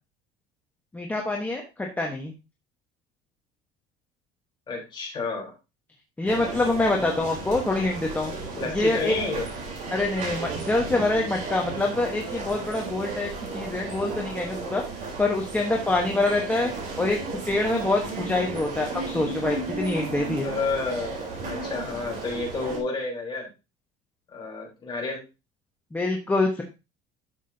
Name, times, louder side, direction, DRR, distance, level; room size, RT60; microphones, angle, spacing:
voice 1, 0.9-2.3 6.2-8.3 8.7-9.1 9.9-14.8 15.2-16.7 17.0-17.2 17.5-20.5 25.9-26.6, left 2 dB, 10° left, 0 dB, 1.3 m, -25 dB
voice 2, 4.7-5.5 8.6-9.5 20.4-21.2 21.4-23.5 24.3-25.2, left 3 dB, 25° left, -1 dB, 4.0 m, -30 dB
sound 1, 6.3-22.8, right 3 dB, 45° right, 3.9 m, -34 dB
11.0 x 7.3 x 2.8 m, 0.27 s
cardioid pair, 140°, 19 cm